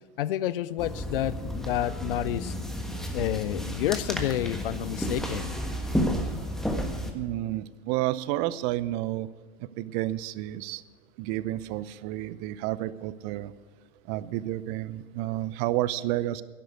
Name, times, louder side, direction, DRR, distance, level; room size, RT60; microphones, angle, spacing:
voice 1, 0.2-2.5 3.1-5.5, left 13 dB, 65° left, 19 dB, 0.6 m, -29 dB
sound 1, 0.8-7.1, equal, ahead, 1.5 m, -31 dB
voice 2, 7.1-9.3 9.6-10.8 11.2-13.5 14.1-16.4, right 15 dB, 45° right, 17 dB, 0.7 m, -30 dB
11.5 x 10.5 x 8.1 m, 1.4 s
hypercardioid pair, 95°, 30 cm